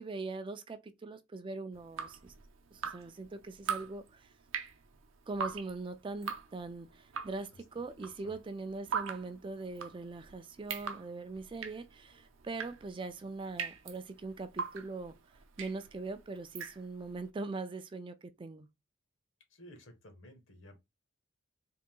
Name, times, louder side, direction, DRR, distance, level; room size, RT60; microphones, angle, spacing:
voice 1, 0.0-2.3 2.7-4.3 5.3-15.1 15.6-18.7, right 3 dB, 25° right, 0.3 m, -41 dB
Drip, 1.7-17.2, right 6 dB, 70° right, 0.6 m, -42 dB
voice 2, 19.5-20.8, equal, 70° left, 1.4 m, -54 dB
3.9 x 2.7 x 3.7 m
head